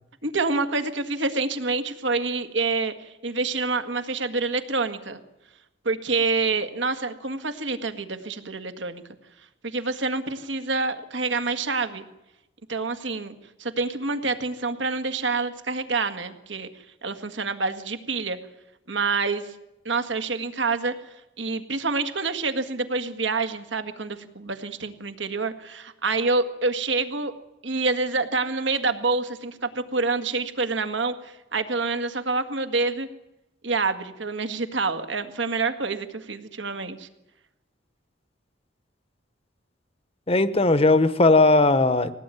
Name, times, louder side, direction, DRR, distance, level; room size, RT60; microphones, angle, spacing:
voice 1, 0.2-5.2 5.9-9.0 9.6-12.1 12.7-13.3 13.6-16.7 17.0-18.4 18.9-19.5 19.9-20.9 21.4-27.3 27.6-33.1 33.6-37.1, right 3 dB, 75° right, 9 dB, 1.9 m, -27 dB
voice 2, 40.3-42.1, left 2 dB, 30° left, 13 dB, 1.0 m, -18 dB
21.0 x 17.5 x 9.2 m, 0.93 s
head